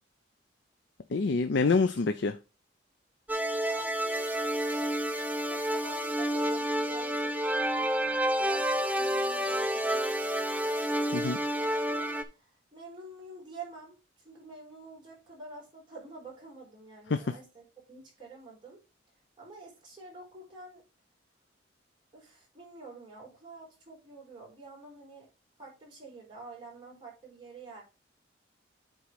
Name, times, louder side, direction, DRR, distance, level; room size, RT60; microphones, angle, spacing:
voice 1, 1.1-2.4 11.1-11.4 17.1-17.3, left 4 dB, 60° left, 0.5 m, -26 dB
sound 1, 3.3-12.2, right 1 dB, 10° right, 0.6 m, -29 dB
voice 2, 3.5-4.9 5.5-7.3 7.7-10.8 11.6-14.0 14.2-18.8 19.4-20.8 22.1-25.3 25.6-27.8, right 3 dB, 25° right, 4.2 m, -48 dB
8.2 x 3.8 x 4.9 m
head